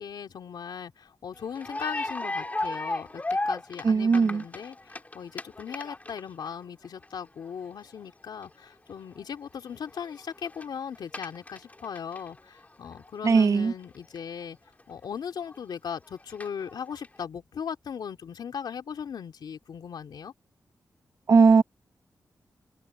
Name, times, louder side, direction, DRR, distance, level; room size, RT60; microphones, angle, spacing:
voice 1, 0.0-14.6 14.9-20.3, left 7 dB, 90° left, 2.9 m, -38 dB
sound 1, 1.5-6.5 6.8-7.0 7.5-7.6 8.0-8.1 8.4-8.5 8.9-9.2 9.5-9.6 9.7-10.6 11.0-12.7 13.0-13.1 13.3-13.4 14.2-14.3 14.8-14.9 15.4-15.6 15.9-17.1, left 2 dB, 20° left, 4.2 m, -34 dB
voice 2, 3.8-4.4 13.2-13.7 21.3-21.6, right 5 dB, 55° right, 1.6 m, -19 dB
open air
wide cardioid pair, 115°, 7 cm